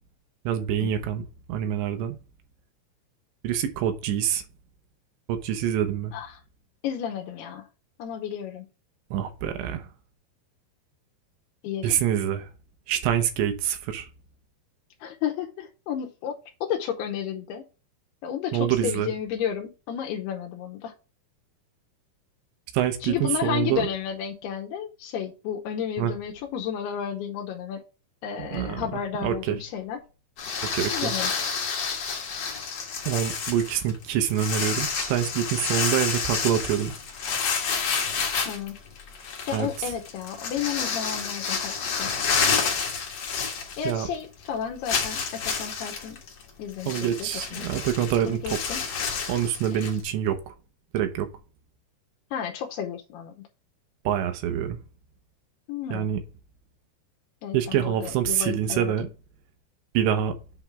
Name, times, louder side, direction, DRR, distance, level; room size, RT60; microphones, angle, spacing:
voice 1, 0.5-2.1 3.4-4.4 5.3-6.1 9.1-9.9 11.8-12.5 12.9-14.1 18.5-19.1 22.7-23.9 26.0-26.1 28.4-29.6 30.7-31.1 33.1-36.9 39.5-39.7 43.8-44.1 46.9-48.6 49.3-50.5 50.9-51.3 54.1-54.8 55.9-56.2 57.5-59.1 59.9-60.4, right 10 dB, 80° right, 3.1 m, -26 dB
voice 2, 6.8-7.7 8.0-8.7 11.6-12.0 15.0-17.7 18.2-20.9 23.0-27.8 28.2-30.0 30.9-31.4 38.2-38.8 39.5-42.1 43.8-46.2 46.6-47.7 48.3-48.8 49.7-49.8 52.3-53.3 55.7-56.1 57.4-59.1, left 8 dB, 75° left, 2.6 m, -32 dB
sound 1, 30.4-44.2 44.4-44.5 44.9-50.0, left 5 dB, 55° left, 1.9 m, -29 dB
8.1 x 3.5 x 5.8 m
omnidirectional pair, 5.2 m